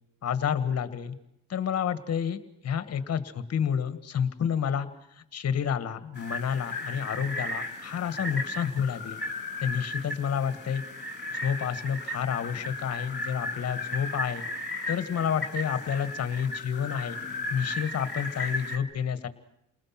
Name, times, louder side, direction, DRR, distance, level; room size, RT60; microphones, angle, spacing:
voice 1, 0.2-1.2 1.5-9.2 9.6-10.8 11.3-14.5 14.9-17.2 17.5-19.3, left 8 dB, 55° left, 11 dB, 2.0 m, -30 dB
sound 1, 6.1-18.8, left 2 dB, 35° left, 3.7 m, -35 dB
29.0 x 20.0 x 6.0 m, 0.77 s
cardioid pair, 90°, 30 cm